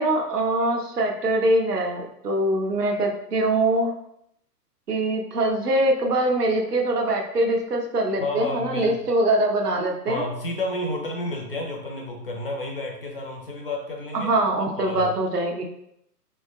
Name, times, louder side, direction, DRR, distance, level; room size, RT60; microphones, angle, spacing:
voice 1, 0.0-3.9 4.9-10.2 14.1-15.6, right 1 dB, 70° right, 2 dB, 0.8 m, -23 dB
voice 2, 8.2-9.0 10.1-14.3 14.8-15.1, left 2 dB, 35° left, 1 dB, 0.5 m, -31 dB
4.4 x 2.7 x 2.2 m, 0.76 s
figure-of-eight pair, 120°, 49 cm